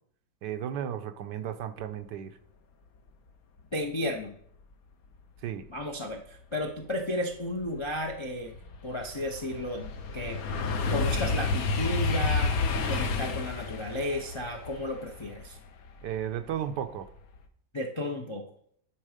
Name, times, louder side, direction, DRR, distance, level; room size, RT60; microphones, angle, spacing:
voice 1, 0.4-2.4 5.4-5.7 16.0-17.1, right 9 dB, 85° right, 9 dB, 1.3 m, -34 dB
voice 2, 3.7-4.4 5.7-8.6 8.8-10.4 10.9-15.6 17.7-18.5, left 1 dB, 45° left, 1 dB, 0.3 m, -33 dB
sound 1, 6.9-7.0 7.5-16.6 17.0-17.4, left 4 dB, 60° left, 1.2 m, -30 dB
10.0 x 4.9 x 5.0 m, 0.67 s
omnidirectional pair, 1.8 m